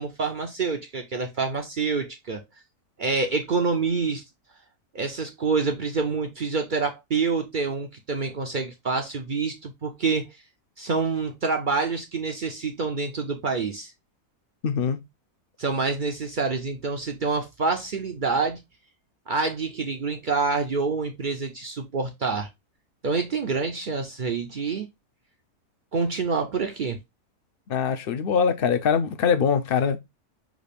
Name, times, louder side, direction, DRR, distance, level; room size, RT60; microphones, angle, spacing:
voice 1, 0.0-2.4 3.0-4.2 4.9-10.3 10.8-13.9 15.6-18.6 19.3-22.5 23.0-24.9 25.9-27.0, right 4 dB, 55° right, 0.5 m, -27 dB
voice 2, 14.6-15.0 27.7-30.0, left 6 dB, 60° left, 0.6 m, -23 dB
6.1 x 2.4 x 3.4 m
omnidirectional pair, 1.6 m